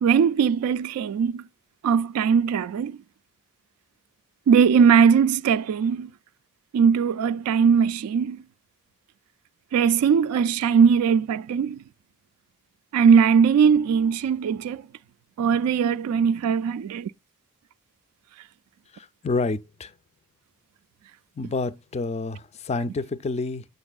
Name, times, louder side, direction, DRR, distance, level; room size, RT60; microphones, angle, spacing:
voice 1, 0.0-1.4 1.8-2.9 4.5-6.1 6.7-8.4 9.7-11.8 12.9-14.8 15.4-17.1, right 6 dB, 75° right, 0.3 m, -20 dB
voice 2, 18.9-19.9 21.4-23.6, left 3 dB, 30° left, 0.4 m, -28 dB
7.8 x 6.7 x 2.2 m
head